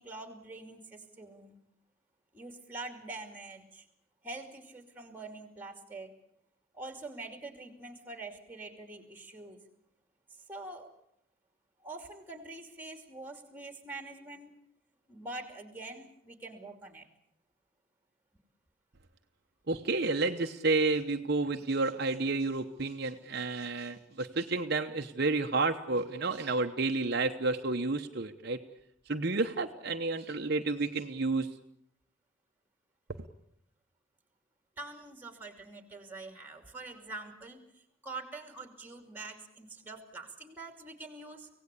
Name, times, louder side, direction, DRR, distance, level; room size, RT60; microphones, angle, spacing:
voice 1, 0.0-1.6 2.3-3.9 4.2-6.1 6.7-9.6 10.3-10.9 11.8-14.5 15.1-17.1 34.8-41.5, right 2 dB, 10° right, 7 dB, 2.7 m, -45 dB
voice 2, 19.7-28.6 29.1-31.5, right 3 dB, 50° right, 5 dB, 1.0 m, -30 dB
25.5 x 17.5 x 8.4 m, 0.73 s
head